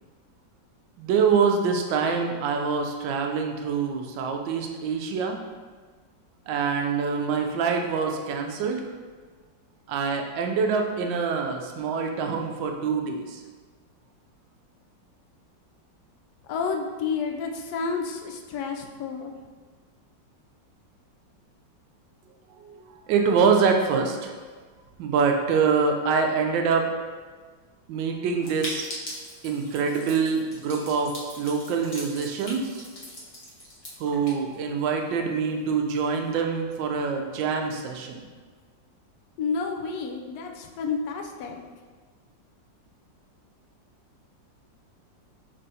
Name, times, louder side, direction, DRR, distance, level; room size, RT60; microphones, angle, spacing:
voice 1, 1.0-5.4 6.5-8.8 9.9-13.4 22.6-22.7 23.1-24.3 25.0-26.9 27.9-28.9 29.4-32.8 34.0-38.2, right 5 dB, 85° right, 3 dB, 1.3 m, -25 dB
voice 2, 16.5-19.3 39.4-41.6, left 5 dB, 75° left, 3 dB, 0.9 m, -30 dB
sound 1, 28.4-35.1 35.4-35.5 35.7-35.8 36.1-36.4, equal, 50° left, 0.4 m, -40 dB
5.5 x 3.4 x 2.7 m, 1.5 s
omnidirectional pair, 2.0 m